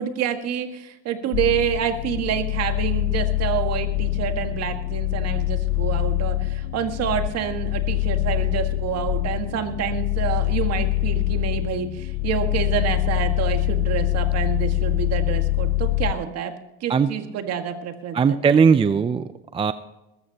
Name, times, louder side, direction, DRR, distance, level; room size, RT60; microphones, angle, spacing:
voice 1, 0.0-16.5 16.8-18.4, right 8 dB, 55° right, 7 dB, 1.8 m, -27 dB
sound 1, 1.3-16.1, left 19 dB, 55° left, 0.5 m, -24 dB
voice 2, 18.1-19.7, right 6 dB, 20° right, 13 dB, 0.4 m, -19 dB
20.5 x 14.0 x 2.9 m, 0.97 s
supercardioid pair, 110°, 31 cm